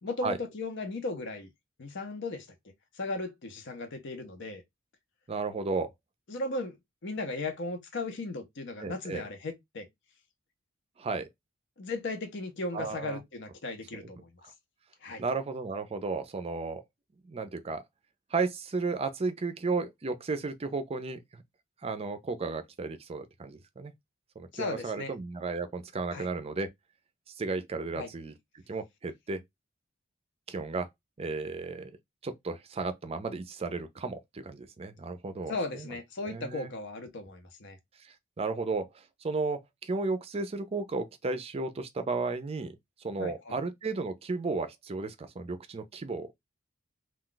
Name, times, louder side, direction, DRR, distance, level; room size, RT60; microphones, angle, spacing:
voice 1, 0.0-1.5 1.8-4.6 6.3-6.8 7.0-9.9 11.8-14.5 15.0-15.2 24.5-25.1 26.1-26.3 27.9-28.1 35.5-37.8 43.2-43.6, left 2 dB, 60° left, 0.7 m, -36 dB
voice 2, 5.3-5.9 8.8-9.2 11.0-11.3 12.7-13.2 13.9-14.0 14.4-14.5 15.2-16.8 17.2-17.8 18.3-21.4 21.8-23.9 24.4-26.7 27.4-28.3 28.7-29.4 30.5-30.9 31.2-31.9 32.2-35.9 36.3-36.7 38.0-46.3, right 3 dB, 30° right, 0.4 m, -34 dB
2.3 x 2.3 x 3.8 m
head